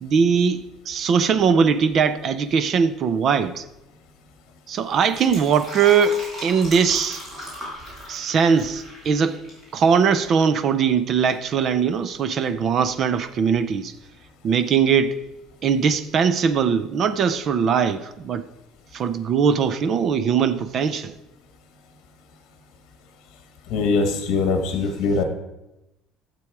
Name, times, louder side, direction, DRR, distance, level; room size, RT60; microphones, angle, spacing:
voice 1, 0.0-3.6 4.7-7.2 8.1-9.4 9.7-13.9 14.4-15.2 15.6-18.5 18.9-21.1, right 6 dB, 35° right, 0.5 m, -20 dB
Fill (with liquid), 4.9-9.7 10.0-10.1, equal, 15° right, 4.5 m, -37 dB
voice 2, 23.7-25.2, left 4 dB, 50° left, 1.4 m, -22 dB
12.0 x 7.7 x 4.7 m
cardioid pair, 175°, 0 cm